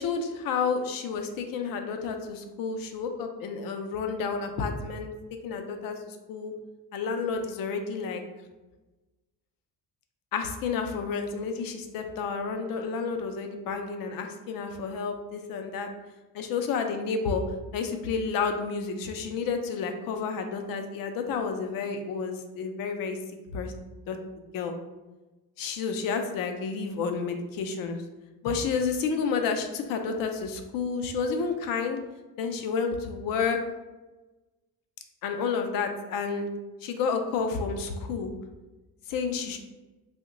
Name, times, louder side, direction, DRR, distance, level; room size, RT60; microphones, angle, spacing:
voice 1, 0.0-5.1 5.4-6.0 6.3-6.5 6.9-8.2 10.3-15.9 16.3-17.4 17.7-23.2 23.5-23.7 24.1-24.2 24.5-24.7 25.6-28.0 28.4-32.0 32.4-33.6 35.2-36.5 36.8-38.3 39.1-39.6, left 5 dB, 65° left, 5 dB, 0.5 m, -30 dB
2.9 x 2.1 x 3.7 m, 1.1 s
cardioid pair, 180°, 37 cm